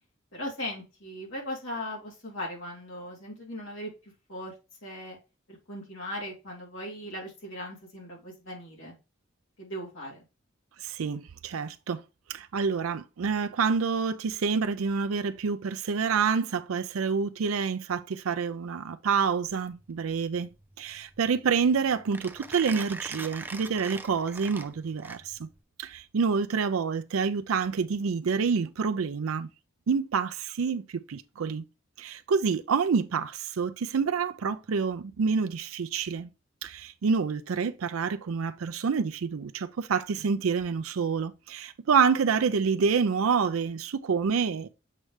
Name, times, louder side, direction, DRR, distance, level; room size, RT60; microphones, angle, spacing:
voice 1, 0.3-4.5 4.8-5.2 5.7-8.9 9.6-10.2, left 1 dB, 70° left, 2.6 m, -38 dB
voice 2, 10.8-12.0 12.3-20.5 20.8-25.5 25.8-29.5 29.9-31.6 32.0-36.3 36.6-44.7, right 5 dB, 90° right, 0.5 m, -27 dB
Mechanisms, 19.5-25.6, right 3 dB, 10° right, 0.3 m, -42 dB
7.5 x 3.3 x 4.9 m
head